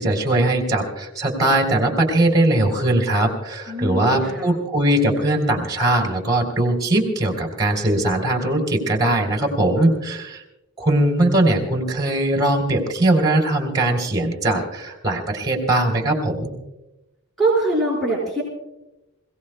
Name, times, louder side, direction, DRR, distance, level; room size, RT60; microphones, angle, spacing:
voice 1, 0.0-10.4 10.8-16.6, right 1 dB, 20° right, 1 dB, 3.7 m, -20 dB
voice 2, 3.7-4.5 17.4-18.4, right 2 dB, ahead, -7 dB, 5.3 m, -22 dB
28.5 x 17.5 x 2.3 m, 0.98 s
head